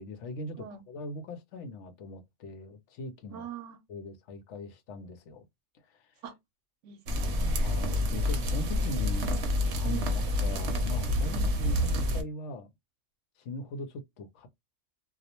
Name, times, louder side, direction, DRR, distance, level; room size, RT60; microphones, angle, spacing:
voice 1, 0.0-3.5 3.9-5.5 5.9-6.1 7.6-9.4 9.7-10.0 10.4-12.7 13.4-14.5, left 2 dB, 75° left, 0.9 m, -40 dB
voice 2, 3.3-3.8 6.2-6.4 6.8-7.8 8.7-8.9 9.8-10.1 11.3-11.5, right 8 dB, 90° right, 0.9 m, -42 dB
sound 1, 7.1-12.2, left 1 dB, 70° right, 0.9 m, -28 dB
2.3 x 2.0 x 2.8 m
omnidirectional pair, 1.2 m